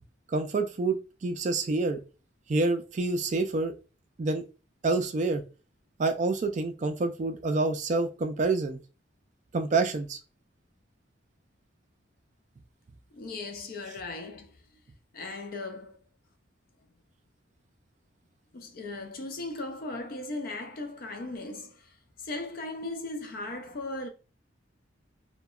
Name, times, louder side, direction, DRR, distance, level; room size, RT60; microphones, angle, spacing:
voice 1, 0.3-2.0 2.5-3.7 4.2-4.4 4.8-5.4 6.0-8.8 9.5-10.2, right 3 dB, 35° right, 0.3 m, -27 dB
voice 2, 13.1-14.5 15.1-16.0 18.5-21.9 22.2-24.1, left 2 dB, 45° left, 0.4 m, -37 dB
2.7 x 2.1 x 2.3 m
head